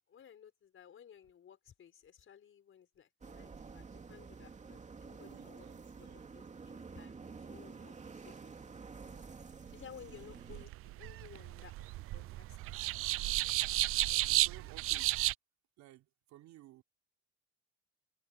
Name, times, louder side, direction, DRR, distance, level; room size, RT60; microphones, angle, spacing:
voice 1, 0.0-5.7 6.0-9.2 9.7-13.0 14.1-14.7, left 8 dB, 40° left, 5.4 m, -57 dB
sound 1, 3.2-10.7, right 5 dB, 20° right, 2.5 m, -50 dB
voice 2, 5.2-6.3 14.2-15.2 15.8-16.8, right 15 dB, 60° right, 3.9 m, -57 dB
sound 2, 10.0-15.3, right 17 dB, 45° right, 0.4 m, -33 dB
supercardioid pair, 105°, 31 cm